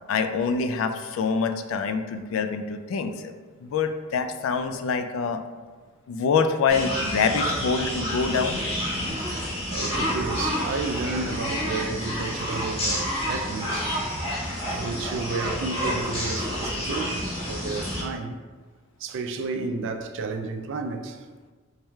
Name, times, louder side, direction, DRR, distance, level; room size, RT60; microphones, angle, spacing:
voice 1, 0.1-3.3 3.6-5.4 6.1-8.6, left 5 dB, 70° left, 0.3 m, -25 dB
sound 1, 6.7-18.0, equal, 30° left, 1.4 m, -29 dB
voice 2, 9.7-13.9 14.7-18.4 19.0-21.3, right 3 dB, 65° right, 0.3 m, -32 dB
4.5 x 3.2 x 2.2 m
head